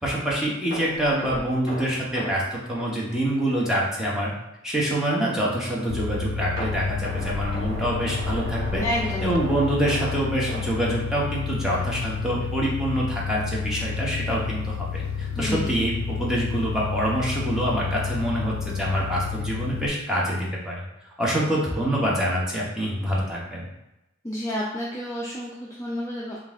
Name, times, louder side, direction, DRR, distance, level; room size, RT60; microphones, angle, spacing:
voice 1, 0.0-4.3 4.6-8.8 9.2-20.8 21.2-23.7, right 1 dB, 5° right, -5 dB, 0.9 m, -26 dB
sound 1, 0.7-3.7 4.1-4.2 4.7-4.8 6.6-11.5 11.8-12.0 12.4-12.5, right 1 dB, 20° right, 1.3 m, -36 dB
sound 2, 5.9-19.9, left 6 dB, 85° left, 0.3 m, -30 dB
voice 2, 8.8-9.3 15.4-15.8 24.2-26.5, equal, 15° left, -5 dB, 0.4 m, -30 dB
3.9 x 2.4 x 3.6 m, 0.91 s
head